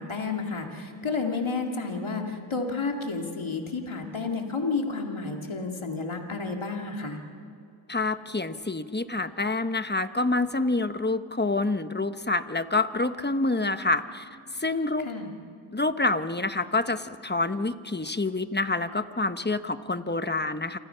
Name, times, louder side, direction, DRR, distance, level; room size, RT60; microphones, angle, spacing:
voice 1, 0.0-7.2 15.0-15.3, left 4 dB, 80° left, 2 dB, 2.3 m, -31 dB
voice 2, 7.9-14.3 14.6-15.1 15.7-20.8, left 2 dB, 20° left, 10 dB, 1.1 m, -27 dB
28.5 x 25.5 x 5.7 m, 2.4 s
wide cardioid pair, 45°, 48 cm